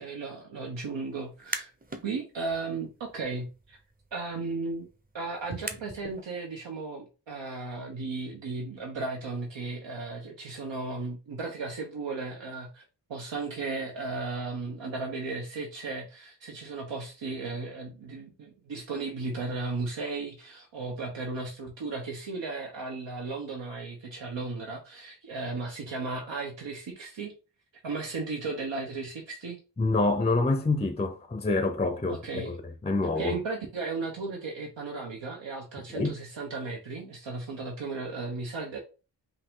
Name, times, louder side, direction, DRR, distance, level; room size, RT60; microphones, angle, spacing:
voice 1, 0.0-1.7 2.0-3.8 4.1-4.9 5.1-12.8 13.1-27.3 27.8-29.6 32.1-32.6 33.2-38.8, right 3 dB, 85° right, 1.1 m, -35 dB
sound 1, 1.2-2.1 2.5-6.2, right 2 dB, 20° right, 0.7 m, -42 dB
voice 2, 29.8-32.6 32.8-33.4 35.9-36.2, left 3 dB, 15° left, 0.5 m, -26 dB
5.3 x 2.7 x 3.6 m
wide cardioid pair, 85°, 43 cm